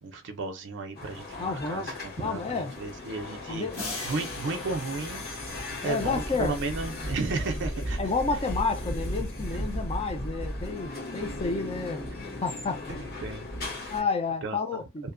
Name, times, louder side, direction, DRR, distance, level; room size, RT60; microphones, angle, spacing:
voice 1, 0.0-3.7 4.0-8.1 12.9-14.1 14.4-14.8, right 3 dB, 55° right, 0.5 m, -34 dB
sound 1, 1.0-14.0, left 1 dB, 50° left, 1.2 m, -36 dB
voice 2, 1.4-1.9 2.2-2.7 3.5-3.8 5.8-6.6 8.0-12.1 12.4-13.1 13.9-15.1, left 4 dB, 25° left, 0.5 m, -30 dB
sound 2, 3.7-6.5, left 2 dB, 70° left, 1.6 m, -40 dB
2.7 x 2.1 x 2.5 m
head